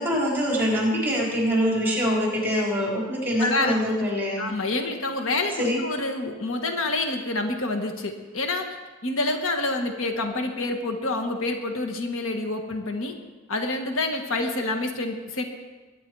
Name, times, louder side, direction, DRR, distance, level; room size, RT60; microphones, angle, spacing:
voice 1, 0.0-4.4 5.6-5.8, equal, 10° right, -3 dB, 4.2 m, -24 dB
voice 2, 3.4-3.8 4.4-8.7 9.0-13.1 13.5-15.4, left 2 dB, 75° left, 5 dB, 1.4 m, -27 dB
22.0 x 9.8 x 4.7 m, 1.3 s
head